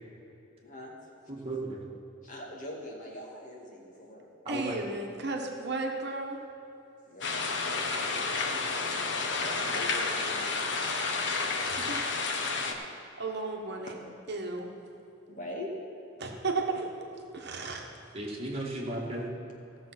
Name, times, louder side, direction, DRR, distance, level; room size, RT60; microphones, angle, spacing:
voice 1, 0.6-1.0 2.2-4.3 7.1-7.5 8.1-10.8 15.3-15.7, left 1 dB, 40° left, -2 dB, 2.1 m, -43 dB
voice 2, 1.3-1.9 4.4-4.8 18.1-19.3, right 1 dB, 30° right, -3 dB, 2.1 m, -35 dB
voice 3, 4.5-6.4 11.6-12.0 13.2-13.9 14.3-14.7 16.2-17.9, right 3 dB, 55° right, 1 dB, 1.3 m, -34 dB
sound 1, 7.2-12.7, left 4 dB, 60° left, 1.2 m, -30 dB
16.5 x 7.1 x 5.9 m, 2.9 s
head